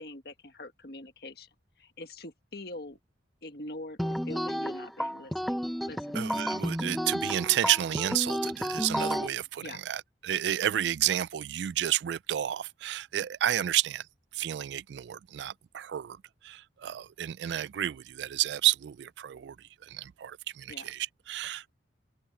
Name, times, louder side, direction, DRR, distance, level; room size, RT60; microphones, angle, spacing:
voice 1, 0.0-1.5 1.8-3.0 3.4-5.6 5.8-6.3 9.6-9.8 20.7-20.9, left 2 dB, 60° left, 1.7 m, -44 dB
sound 1, 4.0-9.3, equal, ahead, 0.8 m, -31 dB
voice 2, 6.1-14.0 14.3-16.2 16.4-19.6 19.8-21.7, right 12 dB, 75° right, 0.3 m, -31 dB
open air
head